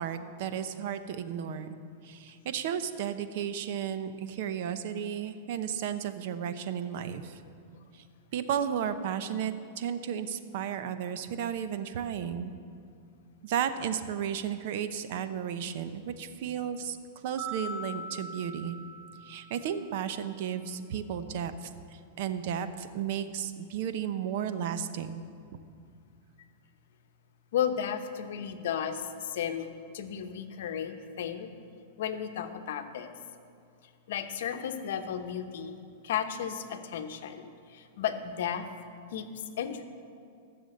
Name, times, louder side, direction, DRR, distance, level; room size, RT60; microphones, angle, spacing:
voice 1, 0.0-1.8 2.0-7.4 7.9-8.0 8.3-12.5 13.4-17.0 17.2-18.8 19.2-25.2, right 8 dB, 55° right, 11 dB, 0.8 m, -34 dB
sound 1, 17.4-19.7, right 1 dB, ahead, 2.2 m, -41 dB
voice 2, 27.5-29.7 29.9-31.5 32.0-33.1 34.1-35.8 36.0-38.6 39.1-39.3 39.6-39.8, left 9 dB, 70° left, 8 dB, 1.0 m, -34 dB
14.5 x 6.9 x 7.8 m, 2.4 s
supercardioid pair, 155°, 0 cm